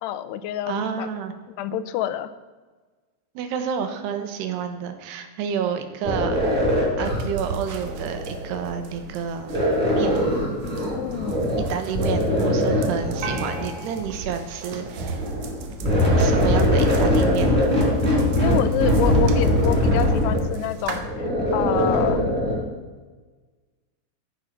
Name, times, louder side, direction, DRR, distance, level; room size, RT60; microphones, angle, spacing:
voice 1, 0.0-1.1 1.6-2.3 11.0-11.5 18.3-22.3, left 11 dB, 85° left, 13 dB, 2.8 m, -27 dB
voice 2, 0.7-1.3 3.4-6.4 7.0-9.5 9.9-10.2 11.7-15.2 16.2-17.5, right 7 dB, 85° right, 7 dB, 3.4 m, -29 dB
sound 1, 6.0-8.8 9.5-11.7 11.9-13.7 14.8-22.6, equal, 10° right, 5.4 m, -22 dB
sound 2, 7.0-21.0, right 5 dB, 65° right, 2.1 m, -38 dB
sound 3, 13.2-15.7, right 2 dB, 45° right, 1.4 m, -38 dB
15.0 x 9.8 x 5.9 m, 1.3 s
omnidirectional pair, 4.7 m